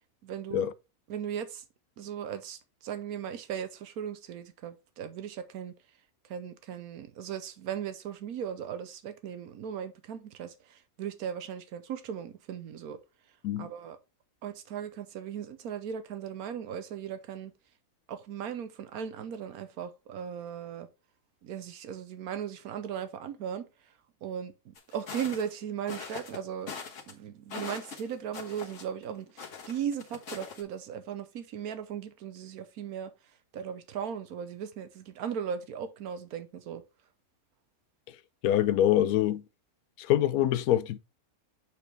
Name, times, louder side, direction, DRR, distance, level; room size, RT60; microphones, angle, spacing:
voice 1, 0.2-0.7 1.1-1.6 2.0-5.7 6.3-13.0 13.6-14.0 14.4-17.5 18.1-20.9 21.4-23.7 24.2-26.8 27.1-33.1 33.5-36.8, right 8 dB, 90° right, 1.3 m, -37 dB
sound 1, 24.7-25.5 25.9-26.4 26.7-27.1 27.5-29.0 29.4-30.6, left 6 dB, 60° left, 1.7 m, -42 dB
voice 2, 38.4-39.4 40.0-41.0, left 12 dB, 80° left, 1.0 m, -25 dB
8.2 x 4.3 x 3.3 m
omnidirectional pair, 1.5 m